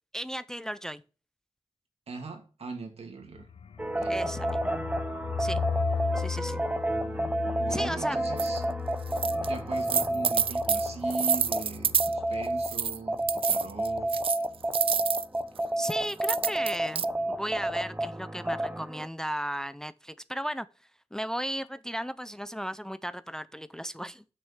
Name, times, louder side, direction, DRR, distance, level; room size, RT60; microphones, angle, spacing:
voice 1, 0.1-1.0 4.1-4.8 5.4-5.6 6.2-6.6 7.7-8.2 15.8-20.7 21.1-24.2, equal, 5° left, 0.5 m, -35 dB
voice 2, 2.1-3.5 3.9-4.2 7.6-8.6 9.2-14.2, right 4 dB, 75° right, 2.3 m, -40 dB
sound 1, 3.2-13.0 13.2-13.3 13.6-14.1, left 6 dB, 70° left, 0.5 m, -37 dB
sound 2, 3.8-12.7 13.1-19.1, right 1 dB, 10° right, 0.8 m, -30 dB
sound 3, 8.4-8.5 9.1-9.5 9.8-12.1 12.6-13.0 13.3-15.2 15.8-17.0, right 7 dB, 60° right, 0.4 m, -28 dB
6.5 x 6.3 x 6.2 m
wide cardioid pair, 90°, 10 cm